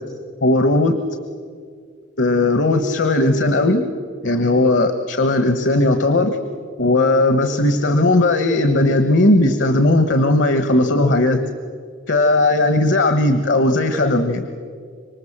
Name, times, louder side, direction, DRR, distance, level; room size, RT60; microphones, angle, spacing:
voice 1, 0.4-1.0 2.2-3.8 4.2-6.4 6.8-11.4 12.1-14.5, left 2 dB, 70° left, 8 dB, 1.3 m, -17 dB
26.5 x 24.0 x 7.4 m, 2.1 s
head